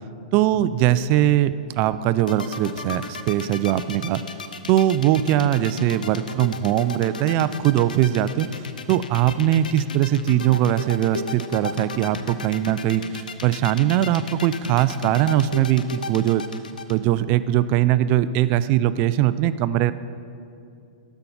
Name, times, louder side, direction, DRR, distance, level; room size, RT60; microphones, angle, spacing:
voice 1, 0.3-4.2 4.7-8.5 8.9-16.4 16.9-19.9, right 12 dB, 40° right, 14 dB, 0.3 m, -21 dB
sound 1, 2.2-17.0, left 5 dB, 90° left, 0.6 m, -33 dB
12.5 x 4.6 x 5.4 m, 2.6 s
hypercardioid pair, 120°, 4 cm